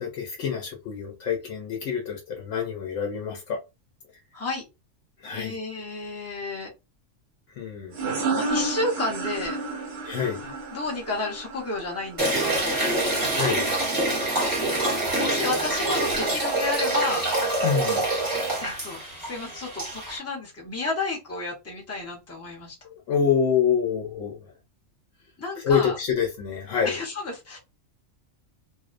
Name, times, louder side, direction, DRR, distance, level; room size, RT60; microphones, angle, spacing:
voice 1, 0.0-3.6 5.2-5.6 7.6-8.2 10.0-10.5 13.2-13.7 17.6-18.3 23.1-24.5 25.6-27.0, left 7 dB, 80° left, 0.9 m, -27 dB
voice 2, 4.3-4.7 5.3-6.7 8.3-9.6 10.7-12.8 15.0-17.2 18.6-22.8 25.4-26.0 26.8-27.6, left 2 dB, 15° left, 0.6 m, -31 dB
sound 1, 7.9-13.3, right 3 dB, 60° right, 0.8 m, -31 dB
sound 2, 12.2-20.2, right 2 dB, 20° right, 0.8 m, -26 dB
2.5 x 2.0 x 2.4 m
omnidirectional pair, 1.3 m